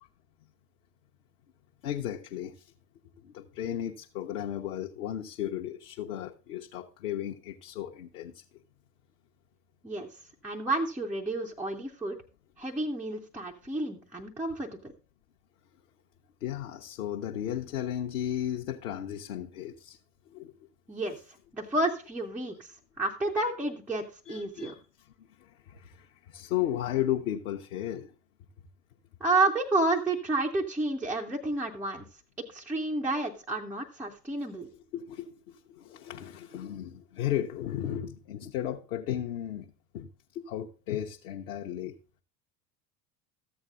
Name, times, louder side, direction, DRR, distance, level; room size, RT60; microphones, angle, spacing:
voice 1, 1.8-2.7 3.2-8.4 16.4-20.0 20.3-20.5 24.3-24.8 25.2-28.1 34.7-42.0, left 11 dB, 55° left, 0.8 m, -35 dB
voice 2, 10.4-12.2 12.6-14.8 20.9-21.2 21.5-22.7 23.0-24.7 29.2-32.1 32.5-34.7, right 2 dB, 5° right, 0.3 m, -30 dB
13.5 x 8.2 x 2.3 m
figure-of-eight pair, 75°, 50 cm